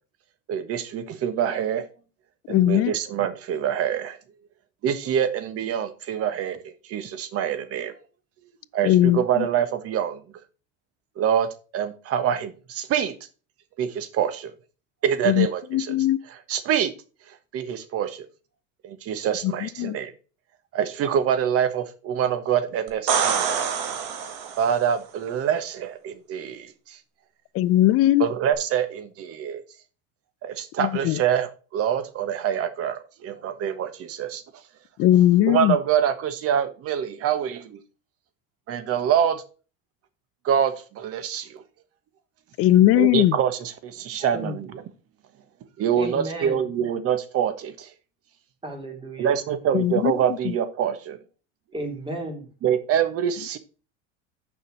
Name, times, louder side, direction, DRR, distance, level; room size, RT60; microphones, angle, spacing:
voice 1, 0.5-1.8 2.5-4.2 4.8-6.6 6.8-7.9 8.7-10.2 11.2-13.1 13.8-14.5 15.0-15.9 16.5-16.9 17.5-18.3 18.8-20.1 20.7-23.8 24.6-27.0 28.2-29.6 30.4-34.4 35.5-37.8 38.7-39.4 40.4-41.6 42.9-44.7 45.8-47.9 49.2-51.2 52.6-53.6, right 9 dB, 50° right, 1.4 m, -25 dB
voice 2, 2.5-2.9 8.8-9.5 15.2-16.2 19.4-20.0 27.5-28.3 30.8-31.2 35.0-35.8 42.6-43.4 49.7-50.1 50.4-50.5, left 14 dB, 45° left, 0.5 m, -19 dB
sound 1, 22.9-24.8 28.5-28.6, right 7 dB, 70° right, 1.8 m, -25 dB
voice 3, 45.9-46.7 48.6-49.3 51.7-52.5, right 1 dB, 15° right, 3.0 m, -33 dB
7.0 x 5.5 x 6.3 m
supercardioid pair, 115°, 31 cm